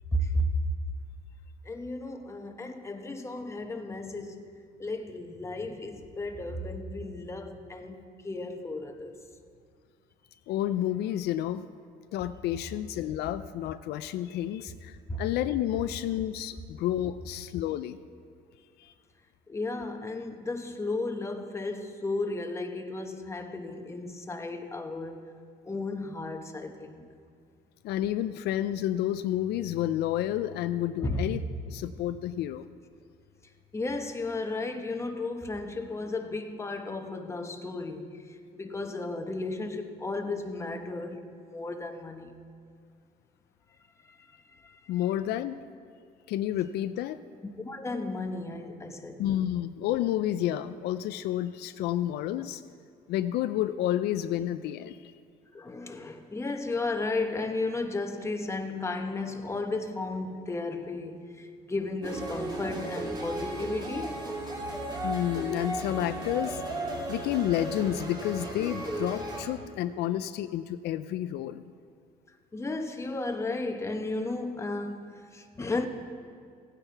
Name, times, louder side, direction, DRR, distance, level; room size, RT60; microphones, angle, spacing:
voice 1, 0.1-0.5 1.6-4.5 4.8-9.1 15.1-15.2 19.5-25.2 25.7-27.1 31.0-31.3 33.7-38.1 38.5-42.3 44.6-44.7 47.6-49.2 55.5-64.2 72.5-75.1 75.3-75.9, left 2 dB, 15° left, 1.0 m, -34 dB
voice 2, 10.5-11.7 12.1-18.0 18.8-18.9 27.8-32.7 44.9-45.6 46.3-47.2 49.2-52.6 53.1-55.1 65.0-66.6 67.1-71.6, left 12 dB, 75° left, 0.4 m, -30 dB
sound 1, 62.0-69.4, right 1 dB, 25° right, 2.6 m, -35 dB
16.0 x 9.1 x 4.6 m
cardioid pair, 110°, 17 cm